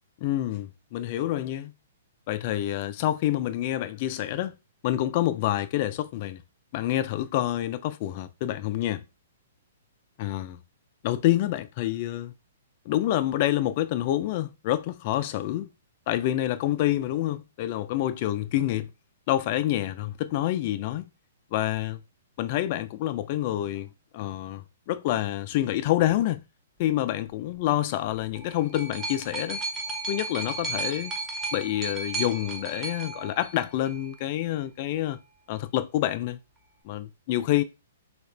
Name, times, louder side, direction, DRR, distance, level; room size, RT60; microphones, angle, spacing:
voice 1, 0.2-1.7 2.3-4.6 4.8-6.4 6.7-9.0 10.2-10.6 11.0-12.3 12.9-15.7 16.1-18.9 19.3-21.1 21.5-22.0 22.4-26.4 26.8-29.6 30.1-31.1 31.5-35.2 35.5-36.4 36.8-37.6, left 13 dB, 35° left, 0.3 m, -27 dB
sound 1, 28.1-34.1 35.0-35.1, right 3 dB, 15° right, 0.5 m, -34 dB
2.8 x 2.4 x 3.3 m
hypercardioid pair, 160°, 0 cm